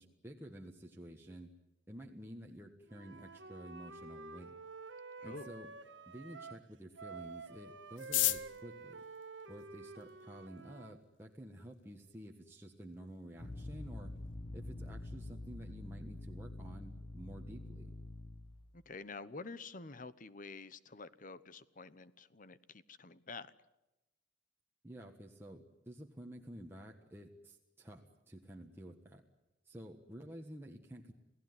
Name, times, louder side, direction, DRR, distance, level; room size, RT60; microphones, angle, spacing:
voice 1, 0.0-1.5 1.9-4.5 5.2-5.7 6.1-9.0 9.5-14.1 14.5-17.9 24.8-29.2 29.6-31.1, equal, 15° right, 0 dB, 1.5 m, -51 dB
Wind instrument woodwind instrument, 2.9-6.6 7.0-11.0, right 4 dB, 80° right, 1.6 m, -50 dB
sound 1, 7.9-10.2 11.0-11.1 11.3-11.4 11.7-12.2 12.5-12.6 12.8-13.2 13.5-13.7 14.0-14.3, left 14 dB, 90° left, 0.9 m, -36 dB
sound 2, 13.4-18.7, left 1 dB, 30° left, 1.2 m, -46 dB
voice 2, 18.7-23.5, left 3 dB, 45° left, 15 dB, 1.0 m, -48 dB
29.0 x 17.5 x 9.6 m, 1.0 s
head